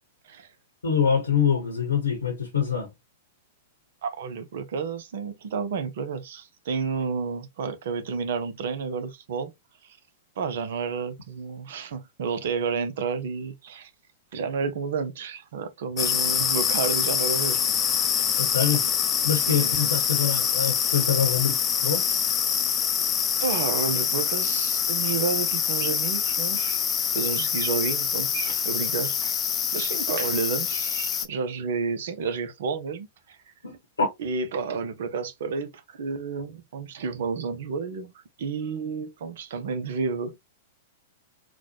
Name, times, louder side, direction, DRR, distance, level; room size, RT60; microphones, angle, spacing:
voice 1, 0.8-2.9 18.4-18.8 19.2-22.0 33.6-34.1, left 7 dB, 75° left, 0.9 m, -25 dB
voice 2, 4.0-9.5 10.4-13.9 14.3-17.6 17.9-18.0 19.5-19.9 23.4-26.8 27.1-29.3 29.7-33.4 34.2-38.1 38.4-40.4, right 5 dB, 60° right, 0.7 m, -31 dB
sound 1, 16.0-31.3, left 8 dB, 25° left, 0.5 m, -25 dB
4.0 x 2.4 x 2.7 m
figure-of-eight pair, 100°, 0 cm